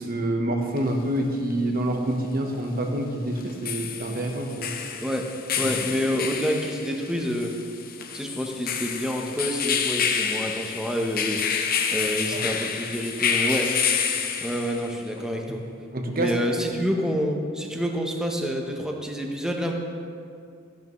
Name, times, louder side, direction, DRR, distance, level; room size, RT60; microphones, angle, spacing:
voice 1, 0.0-4.7 5.6-5.7 12.3-12.4 15.9-16.4, right 1 dB, 45° right, 3 dB, 1.1 m, -27 dB
sound 1, 0.8-0.9 3.4-15.0, left 7 dB, 45° left, 0.7 m, -28 dB
voice 2, 5.6-7.5 8.1-11.4 11.9-13.7 14.4-15.6 16.1-19.7, equal, 5° right, 1 dB, 0.9 m, -28 dB
13.5 x 11.0 x 3.2 m, 2.3 s
head